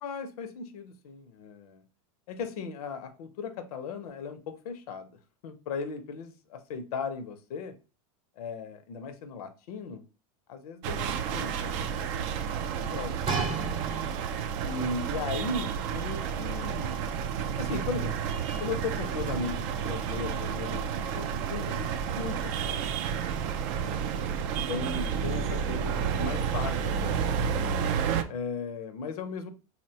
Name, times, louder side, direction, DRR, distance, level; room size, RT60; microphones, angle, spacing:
voice 1, 0.0-1.8 2.3-5.1 5.4-7.8 8.4-10.0 10.5-12.1 12.4-13.5 13.7-13.8 14.6-17.0 17.6-18.2 18.6-22.9 23.7-24.4 24.7-27.5 28.3-29.5, left 4 dB, 90° left, 0.6 m, -37 dB
sound 1, 10.8-28.2, right 7 dB, 55° right, 0.4 m, -31 dB
sound 2, 13.3-14.5 15.3-15.4, right 4 dB, 30° right, 0.7 m, -32 dB
3.9 x 2.1 x 2.7 m
supercardioid pair, 135°, 19 cm